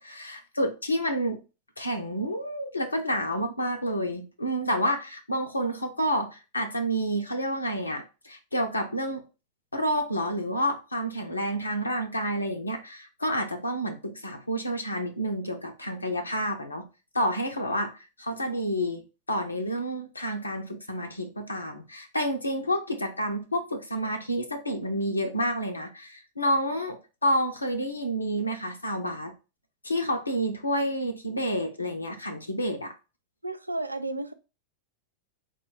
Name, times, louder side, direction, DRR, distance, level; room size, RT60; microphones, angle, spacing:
voice 1, 0.0-1.4 1.8-9.2 9.7-16.9 17.1-29.3 29.8-32.9, equal, 80° left, 0.5 m, -29 dB
voice 2, 33.4-34.3, right 2 dB, 85° right, 0.4 m, -32 dB
4.3 x 2.3 x 4.6 m
figure-of-eight pair, 90°, 0 cm